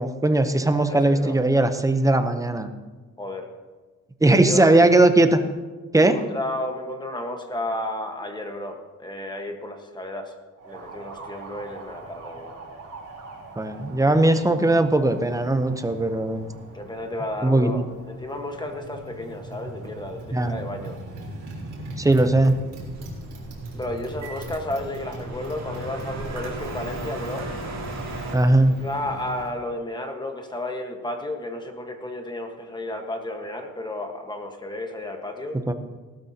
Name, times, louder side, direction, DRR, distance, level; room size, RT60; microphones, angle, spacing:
voice 1, 0.0-2.7 4.2-5.4 5.9-6.2 13.6-16.5 17.4-17.9 20.3-20.5 22.0-22.5 28.3-28.8 35.7-35.8, right 2 dB, 10° right, 8 dB, 0.7 m, -19 dB
voice 2, 0.9-1.4 3.2-3.5 4.3-4.7 6.0-10.3 10.6-12.6 16.7-21.0 23.7-27.5 28.8-35.6, left 1 dB, 15° left, 4 dB, 1.3 m, -32 dB
Motorcycle, 10.6-29.6, right 2 dB, 70° right, 3.6 m, -40 dB
sound 1, 22.8-28.3, right 2 dB, 55° right, 3.3 m, -36 dB
17.5 x 12.5 x 2.8 m, 1.3 s
cardioid pair, 145°, 32 cm